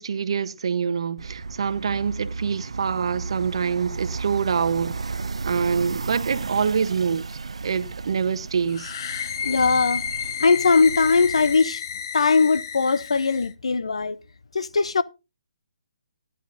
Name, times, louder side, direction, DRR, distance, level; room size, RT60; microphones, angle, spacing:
voice 1, 0.0-5.1 5.4-8.9, right 6 dB, 60° right, 0.9 m, -25 dB
sound 1, 1.2-11.6, right 4 dB, 75° right, 0.5 m, -34 dB
sound 2, 8.7-13.5, left 8 dB, 45° left, 0.8 m, -32 dB
voice 2, 9.4-10.0 10.4-11.8 12.1-14.2 14.5-15.0, left 4 dB, 75° left, 0.8 m, -20 dB
15.5 x 10.0 x 2.6 m
figure-of-eight pair, 145°, 3 cm